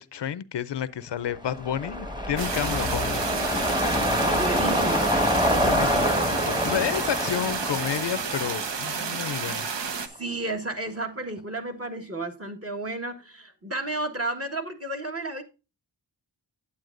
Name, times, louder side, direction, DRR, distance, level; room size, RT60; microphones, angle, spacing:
voice 1, 0.0-3.0 5.6-9.7, left 9 dB, 70° left, 0.5 m, -30 dB
sound 1, 1.3-9.8 10.2-10.3, equal, 10° right, 1.2 m, -26 dB
sound 2, 2.4-10.1, right 5 dB, 70° right, 0.9 m, -31 dB
voice 2, 4.1-5.2 10.1-15.4, right 2 dB, 30° right, 1.4 m, -32 dB
9.2 x 8.5 x 2.5 m
wide cardioid pair, 90°, 44 cm